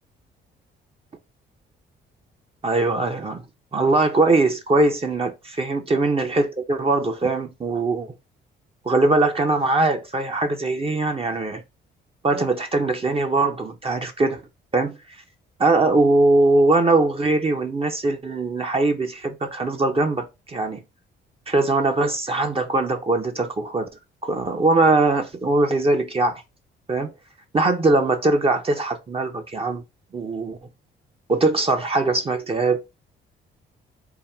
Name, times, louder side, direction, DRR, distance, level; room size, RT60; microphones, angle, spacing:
voice 1, 2.6-3.4 3.7-8.1 8.8-11.6 12.2-14.4 14.7-15.0 15.6-20.8 21.5-23.9 24.2-26.4 26.9-27.1 27.5-29.8 30.1-30.6 31.3-32.8, right 2 dB, 30° right, 0.7 m, -21 dB
3.6 x 2.1 x 4.4 m
cardioid pair, 90°, 20 cm